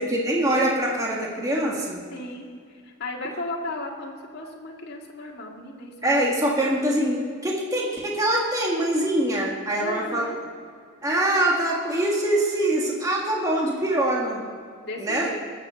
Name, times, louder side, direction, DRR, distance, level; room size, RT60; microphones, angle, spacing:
voice 1, 0.0-2.0 6.0-10.3 11.0-14.4 15.0-15.3, right 1 dB, 15° right, -2 dB, 1.7 m, -24 dB
voice 2, 2.1-6.2 6.6-6.7 9.8-10.4 14.8-15.4, left 2 dB, 50° left, -2 dB, 2.1 m, -35 dB
20.0 x 7.5 x 6.3 m, 2.2 s
head